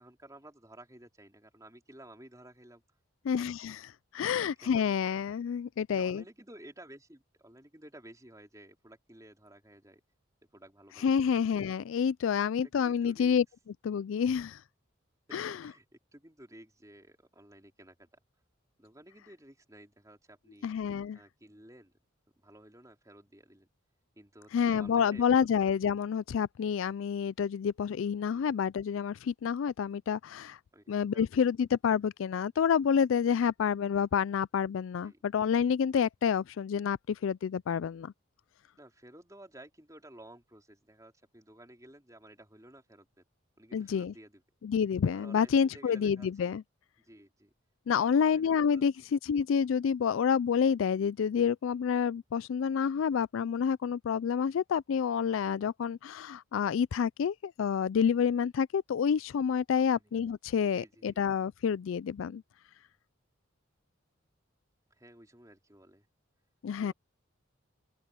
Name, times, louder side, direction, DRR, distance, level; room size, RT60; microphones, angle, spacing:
voice 1, 0.0-2.8 3.3-3.5 4.6-5.0 5.9-10.0 10.5-11.4 12.8-13.4 15.3-15.8 16.1-18.2 18.8-20.7 21.1-21.9 22.4-23.7 24.2-25.5 28.3-28.5 30.7-31.5 35.0-35.2 38.8-43.1 43.6-44.4 45.1-46.5 47.0-47.5 47.9-48.8 59.8-60.1 60.7-61.2 64.9-66.1 66.8-66.9, right 1 dB, 15° right, 4.2 m, -54 dB
voice 2, 3.2-6.2 11.0-14.6 15.3-15.7 20.6-21.2 24.5-30.6 30.9-38.1 43.7-44.1 44.6-46.6 47.9-62.4 66.6-66.9, left 7 dB, 75° left, 0.3 m, -28 dB
open air
head